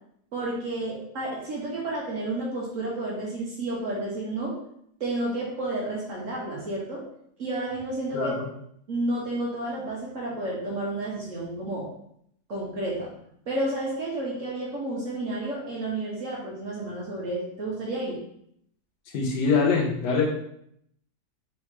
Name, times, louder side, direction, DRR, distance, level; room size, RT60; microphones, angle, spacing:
voice 1, 0.3-4.6 5.0-7.0 7.4-8.3 8.9-11.9 12.5-13.1 13.5-18.2, right 2 dB, 55° right, -4 dB, 1.2 m, -31 dB
voice 2, 8.1-8.5 19.1-20.2, left 4 dB, 75° left, 0 dB, 1.5 m, -24 dB
4.2 x 3.5 x 3.1 m, 0.71 s
omnidirectional pair, 1.8 m